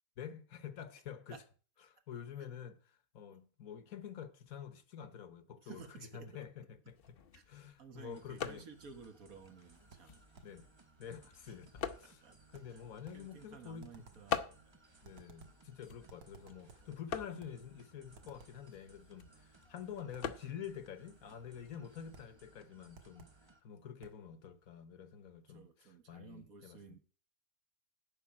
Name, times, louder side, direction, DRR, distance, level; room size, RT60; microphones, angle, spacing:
voice 1, 0.2-1.4 1.9-2.8 3.1-5.8 6.1-7.0 7.5-8.6 10.4-10.7 11.0-12.2 12.5-13.9 15.0-25.7 26.1-26.8, left 8 dB, 65° left, 1.4 m, -48 dB
voice 2, 5.6-6.4 7.3-7.5 7.8-10.2 11.5-11.6 12.0-12.4 12.7-12.8 13.1-15.0 25.5-27.0, right 5 dB, 65° right, 1.8 m, -54 dB
sound 1, 6.9-22.4, left 7 dB, 50° left, 0.8 m, -47 dB
sound 2, 8.1-23.6, right 3 dB, 25° right, 0.8 m, -64 dB
sound 3, 9.9-10.6 12.5-13.3 13.8-14.3 15.0-15.7 16.1-17.0 17.4-17.7 18.1-18.7 20.1-20.4 22.1-22.4 22.9-23.5 24.0-24.3, right 5 dB, 90° right, 1.9 m, -60 dB
11.0 x 5.3 x 8.5 m
omnidirectional pair, 1.6 m